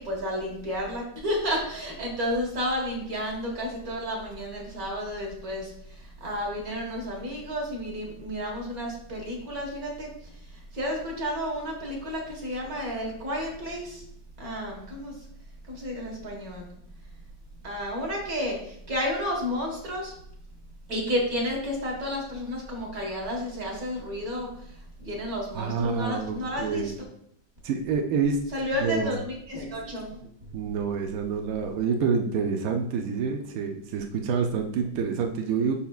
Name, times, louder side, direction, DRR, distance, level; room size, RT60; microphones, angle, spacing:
voice 1, 0.0-10.1 10.5-14.0 14.4-15.1 15.7-16.7 17.6-20.1 20.9-26.9 28.5-30.2, equal, 50° right, -1 dB, 1.9 m, -31 dB
voice 2, 25.5-26.9 27.6-28.4 28.7-29.2 30.5-35.7, right 5 dB, 75° right, 4 dB, 0.8 m, -27 dB
6.9 x 5.8 x 2.4 m, 0.70 s
omnidirectional pair, 2.1 m